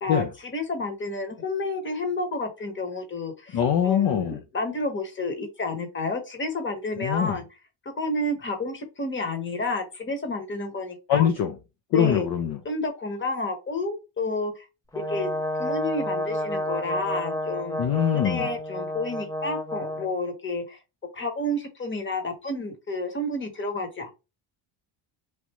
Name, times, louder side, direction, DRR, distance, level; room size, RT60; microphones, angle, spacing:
voice 1, 0.0-3.6 3.8-7.5 8.0-11.3 11.9-12.3 12.6-14.6 15.1-15.3 15.6-17.8 18.1-20.8 21.1-24.1, left 2 dB, 25° left, 1.1 m, -30 dB
voice 2, 3.5-4.4 7.0-7.4 11.1-11.5 11.9-12.6 17.8-18.5, left 9 dB, 50° left, 0.6 m, -23 dB
Brass instrument, 14.9-20.1, equal, 5° left, 0.5 m, -30 dB
3.3 x 2.5 x 2.9 m
cardioid pair, 95°, 50 cm